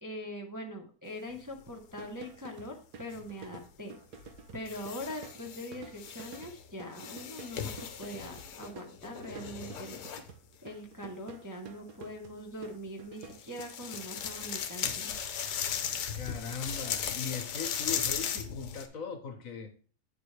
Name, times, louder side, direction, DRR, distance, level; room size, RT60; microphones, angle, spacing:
voice 1, 0.0-4.0 4.5-10.0 10.6-15.1, equal, 15° right, 1 dB, 0.9 m, -42 dB
sound 1, 1.3-2.1 3.1-3.3 4.2-6.6 6.9-10.3 13.2-18.9, left 8 dB, 75° left, 1.4 m, -37 dB
sound 2, 1.7-14.4, right 5 dB, 70° right, 1.5 m, -51 dB
voice 2, 16.1-19.8, left 5 dB, 60° left, 8 dB, 1.2 m, -39 dB
8.3 x 7.3 x 3.3 m, 0.41 s
omnidirectional pair, 1.8 m